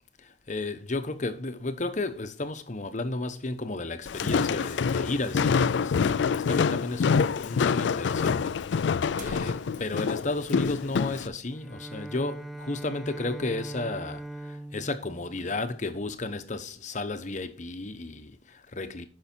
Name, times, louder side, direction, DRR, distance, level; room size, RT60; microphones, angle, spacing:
voice 1, 0.2-8.6 8.9-19.1, left 2 dB, 40° left, 1.0 m, -33 dB
Walk footsteps, 4.1-11.3, left 5 dB, 75° left, 0.4 m, -26 dB
sound 1, 9.1-11.5 11.9-12.0 12.4-12.7 13.1-13.7, right 2 dB, 45° right, 1.6 m, -51 dB
Bowed string instrument, 11.5-16.5, right 1 dB, ahead, 0.5 m, -41 dB
11.0 x 5.5 x 4.5 m
head